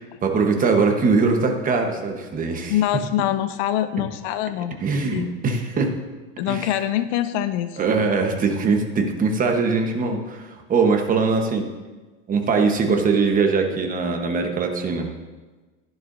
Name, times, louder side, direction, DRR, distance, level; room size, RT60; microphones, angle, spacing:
voice 1, 0.0-2.8 4.8-5.9 6.5-6.7 7.8-11.7 12.3-15.1, right 4 dB, 20° right, 3 dB, 1.1 m, -21 dB
voice 2, 2.7-4.8 5.1-5.3 6.4-7.8, left 11 dB, 60° left, 11 dB, 0.7 m, -24 dB
14.5 x 10.5 x 2.6 m, 1.3 s
supercardioid pair, 150°, 38 cm